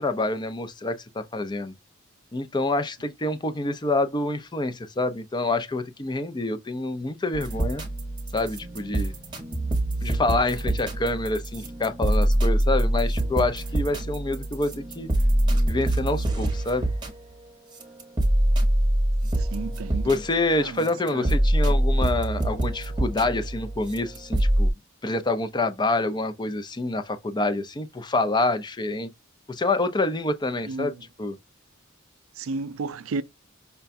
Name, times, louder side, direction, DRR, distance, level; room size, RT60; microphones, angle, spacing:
voice 1, 0.0-1.7 2.3-7.8 8.3-9.1 10.0-15.1 15.7-16.9 20.0-24.7 25.0-29.1 29.5-30.9 31.2-31.4, left 2 dB, 20° left, 0.5 m, -27 dB
sound 1, 7.3-17.2 17.8-20.3 20.8-24.7, right 1 dB, 20° right, 0.9 m, -25 dB
voice 2, 19.2-20.1 20.6-21.3 30.6-31.0 32.4-33.2, right 4 dB, 85° right, 0.4 m, -33 dB
5.6 x 2.2 x 2.5 m
head